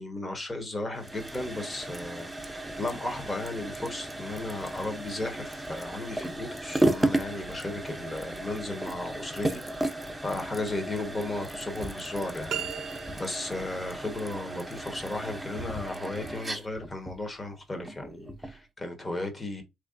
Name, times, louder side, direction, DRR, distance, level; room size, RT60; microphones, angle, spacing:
voice 1, 0.0-9.9 10.2-12.7 13.1-19.6, left 2 dB, 25° left, 1.4 m, -35 dB
sound 1, 0.9-18.6, right 1 dB, 10° right, 0.7 m, -34 dB
sound 2, 12.5-13.6, right 9 dB, 70° right, 0.6 m, -36 dB
3.7 x 3.2 x 2.5 m
cardioid pair, 90°, 0 cm